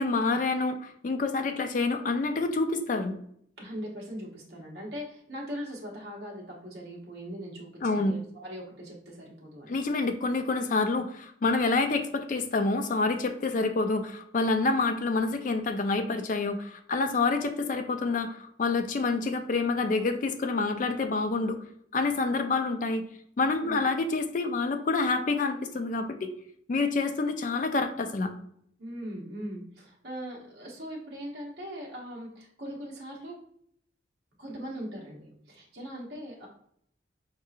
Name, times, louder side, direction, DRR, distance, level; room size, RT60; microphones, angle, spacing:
voice 1, 0.0-3.1 7.8-8.1 9.7-21.6 21.9-23.0 23.4-26.3 26.7-28.3, left 3 dB, 40° left, 7 dB, 0.3 m, -27 dB
voice 2, 3.6-9.7 23.6-23.8 28.8-33.3 34.4-36.5, equal, 55° right, -3 dB, 0.8 m, -40 dB
4.8 x 2.7 x 2.4 m, 0.67 s
head